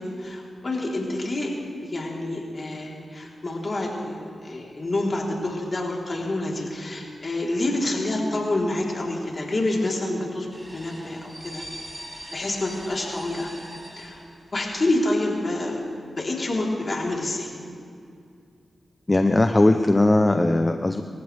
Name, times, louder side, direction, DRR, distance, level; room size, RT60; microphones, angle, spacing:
voice 1, 0.0-1.5 1.8-10.5 10.7-11.6 12.3-13.5 14.0-14.2 14.5-15.8 16.1-17.5, left 2 dB, 50° left, -2 dB, 4.0 m, -27 dB
sound 1, 10.5-14.9 15.2-15.3, equal, 20° right, 4.7 m, -41 dB
voice 2, 19.1-21.0, left 2 dB, 30° left, 7 dB, 0.8 m, -19 dB
27.5 x 15.0 x 3.6 m, 2.4 s
cardioid pair, 45°, 0 cm